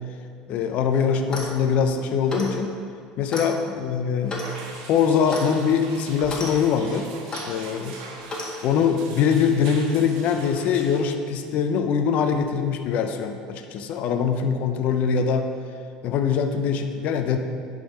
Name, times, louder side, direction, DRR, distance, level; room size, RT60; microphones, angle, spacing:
voice 1, 0.5-2.7 3.2-4.4 4.9-7.1 7.5-8.0 8.3-15.5 16.0-17.4, left 6 dB, 60° left, 6 dB, 0.5 m, -23 dB
Clock, 1.2-1.6 2.3-2.6 3.3-3.5 4.3-4.5 5.3-5.5 6.2-6.5 7.3-7.5 8.3-8.5, left 2 dB, 30° left, 1.5 m, -32 dB
sound 1, 4.4-11.0, right 3 dB, 85° right, 1.2 m, -42 dB
10.0 x 3.8 x 5.2 m, 2.3 s
supercardioid pair, 110°, 3 cm